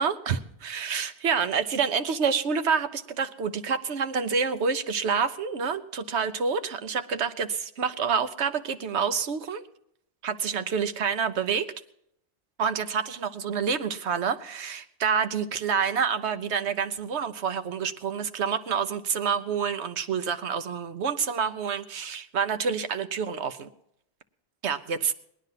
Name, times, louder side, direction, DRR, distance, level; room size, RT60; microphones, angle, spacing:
voice 1, 0.0-9.6 10.2-11.7 12.6-23.7 24.6-25.1, right 6 dB, 80° right, 10 dB, 1.2 m, -28 dB
19.0 x 11.5 x 5.8 m, 0.76 s
omnidirectional pair, 1.1 m